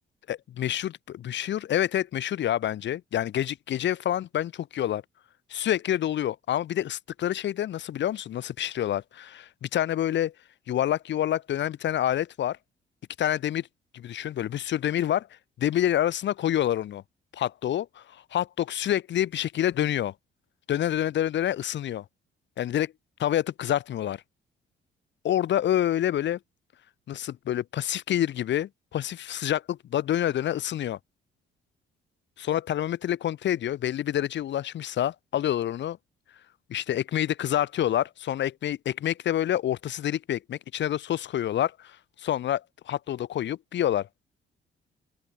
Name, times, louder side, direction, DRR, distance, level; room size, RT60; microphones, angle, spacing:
voice 1, 0.3-5.0 5.5-10.3 10.7-12.6 13.2-13.7 13.9-15.3 15.6-17.0 17.3-20.1 20.7-22.0 22.6-22.9 23.2-24.2 25.2-26.4 27.1-31.0 32.4-36.0 36.7-44.1, left 11 dB, 65° left, 1.4 m, -27 dB
open air
cardioid pair, 90°, 20 cm